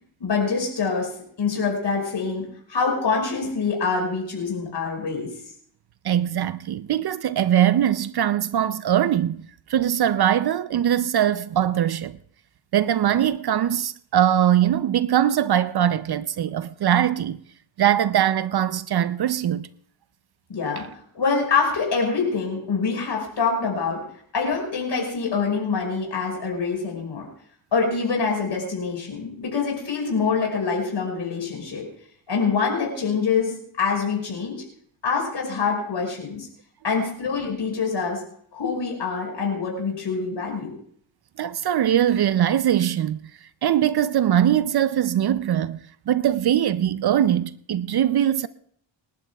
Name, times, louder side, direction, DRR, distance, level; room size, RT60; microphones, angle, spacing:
voice 1, 0.2-1.1 1.4-5.4 20.5-20.9 21.1-24.0 24.3-27.3 27.7-31.8 32.3-34.6 35.0-36.5 36.8-38.2 38.5-40.8, left 5 dB, 60° left, 5.2 m, -25 dB
voice 2, 6.0-12.2 12.7-17.4 17.8-19.7 41.4-48.5, right 10 dB, 55° right, 0.5 m, -21 dB
27.5 x 11.5 x 2.3 m
cardioid pair, 90°, 47 cm